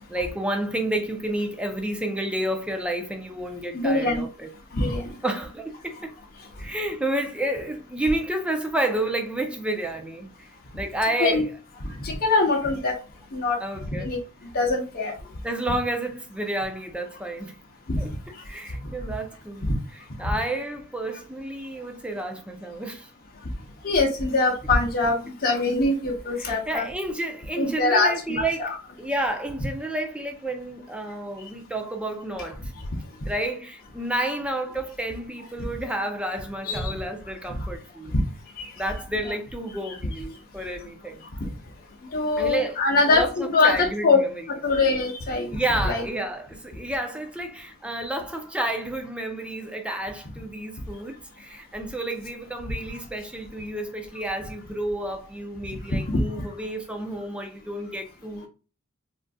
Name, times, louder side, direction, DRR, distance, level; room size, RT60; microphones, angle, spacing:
voice 1, 0.1-4.5 5.2-6.1 6.6-11.4 13.6-14.1 15.4-17.6 18.0-18.1 18.4-19.7 20.2-23.1 26.4-28.7 29.0-32.7 33.3-38.1 38.7-41.2 42.4-42.8 43.1-44.3 45.5-58.5, right 1 dB, 5° right, 0.5 m, -30 dB
voice 2, 3.7-4.2 4.7-5.2 11.2-11.4 11.8-12.9 13.3-14.2 14.5-15.1 17.9-18.0 18.8-18.9 19.6-19.7 20.2-20.3 23.8-26.9 27.6-28.8 36.6-37.0 37.6-37.7 38.1-38.2 38.6-38.7 39.2-39.3 42.1-44.2 44.5-45.6 45.9-46.0 56.0-56.2, left 3 dB, 45° left, 0.8 m, -23 dB
3.8 x 2.5 x 2.3 m
head